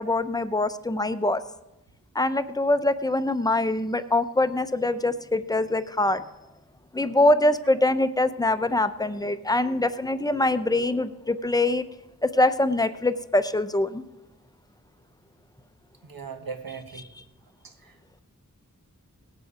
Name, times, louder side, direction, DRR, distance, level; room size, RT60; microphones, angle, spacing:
voice 1, 0.0-1.4 2.1-6.2 6.9-11.9 12.2-14.0 16.9-17.2, left 2 dB, 10° left, 11 dB, 0.6 m, -24 dB
voice 2, 16.0-17.1 17.6-17.7, right 5 dB, 85° right, 5 dB, 1.3 m, -38 dB
18.5 x 7.9 x 5.0 m, 0.99 s
wide cardioid pair, 80°, 34 cm